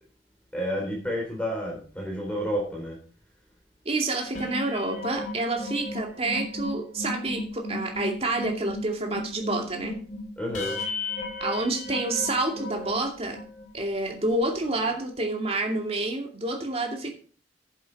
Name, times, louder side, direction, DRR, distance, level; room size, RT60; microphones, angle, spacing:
voice 1, 0.5-3.0 10.4-10.8, equal, 5° left, -2 dB, 3.7 m, -30 dB
voice 2, 3.8-10.0 11.4-13.4 13.7-17.1, right 2 dB, 35° right, 2 dB, 2.4 m, -28 dB
sound 1, 4.2-13.7 14.2-14.3 14.6-14.9, left 2 dB, 45° left, 3.5 m, -35 dB
10.5 x 7.7 x 5.3 m, 0.40 s
head